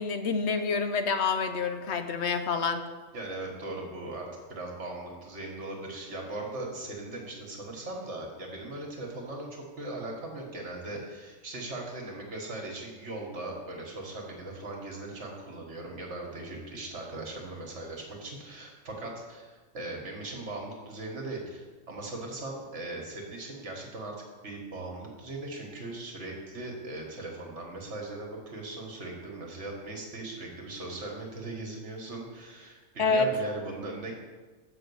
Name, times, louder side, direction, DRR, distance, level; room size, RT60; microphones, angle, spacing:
voice 1, 0.0-2.8 33.0-33.3, left 4 dB, 65° left, 8 dB, 1.0 m, -27 dB
voice 2, 3.1-24.2 24.4-34.1, right 2 dB, 65° right, 0 dB, 1.8 m, -39 dB
7.3 x 5.3 x 6.9 m, 1.4 s
omnidirectional pair, 1.3 m